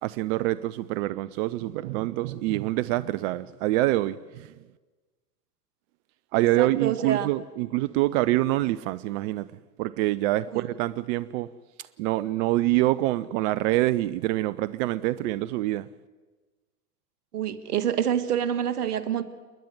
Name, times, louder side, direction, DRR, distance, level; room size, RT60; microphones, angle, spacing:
voice 1, 0.0-4.5 6.3-9.5 9.8-11.5 12.0-15.9, right 16 dB, 55° right, 0.7 m, -26 dB
voice 2, 6.3-7.3 10.5-10.6 17.3-19.2, right 9 dB, 85° right, 1.6 m, -27 dB
29.5 x 10.5 x 9.5 m
hypercardioid pair, 100°, 45 cm